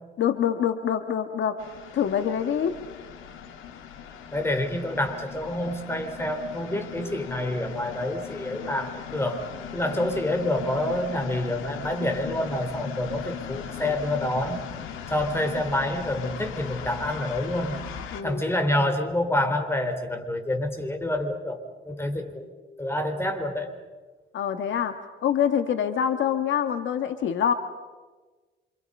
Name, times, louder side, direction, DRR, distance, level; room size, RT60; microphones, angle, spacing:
voice 1, 0.2-1.6 1.9-2.8 9.9-10.1 18.1-18.4 24.3-27.5, left 8 dB, 70° left, 8 dB, 1.5 m, -25 dB
sound 1, 1.6-18.2, left 8 dB, 90° left, 2.5 m, -39 dB
voice 2, 4.3-9.5 9.7-14.6 15.1-17.8 18.2-21.6 21.8-22.5 22.8-23.7, left 1 dB, 10° left, 6 dB, 4.0 m, -27 dB
27.5 x 27.5 x 5.5 m, 1.3 s
cardioid pair, 90°, 20 cm